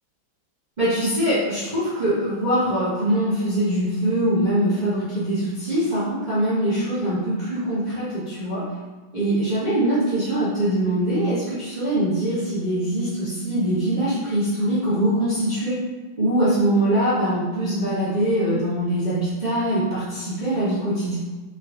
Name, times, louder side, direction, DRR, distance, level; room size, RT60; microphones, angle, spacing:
voice 1, 0.8-8.6 9.1-15.8 16.2-21.2, right 1 dB, 30° right, -13 dB, 0.8 m, -23 dB
3.8 x 3.2 x 2.3 m, 1.3 s
omnidirectional pair, 2.1 m